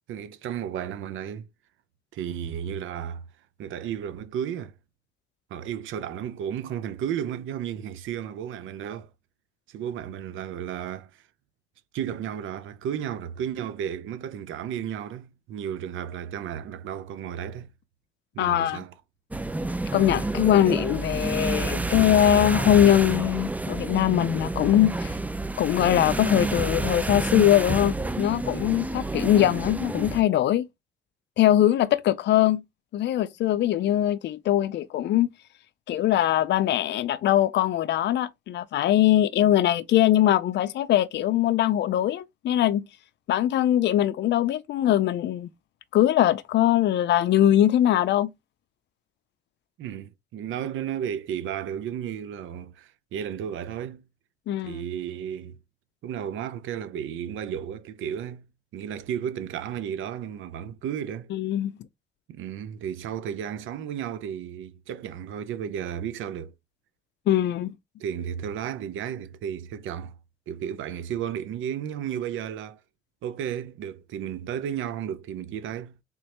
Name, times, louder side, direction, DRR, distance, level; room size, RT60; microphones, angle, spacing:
voice 1, 0.1-1.5 2.1-3.2 3.6-4.7 5.5-9.1 9.7-11.2 11.9-17.7 18.3-18.9 49.8-54.1 54.6-55.6 56.0-58.5 58.7-61.3 62.3-66.5 68.0-70.2 70.5-72.8 73.2-76.0, right 9 dB, 80° right, 0.6 m, -33 dB
voice 2, 18.4-18.8 19.9-25.2 25.6-30.7 31.4-32.6 32.9-35.3 35.9-42.8 43.3-45.5 45.9-48.3 54.5-54.8 61.3-61.7 67.3-67.7, left 12 dB, 60° left, 0.4 m, -22 dB
sound 1, 19.3-30.2, right 2 dB, 10° right, 0.4 m, -29 dB
3.6 x 3.1 x 2.9 m
cardioid pair, 90°, 20 cm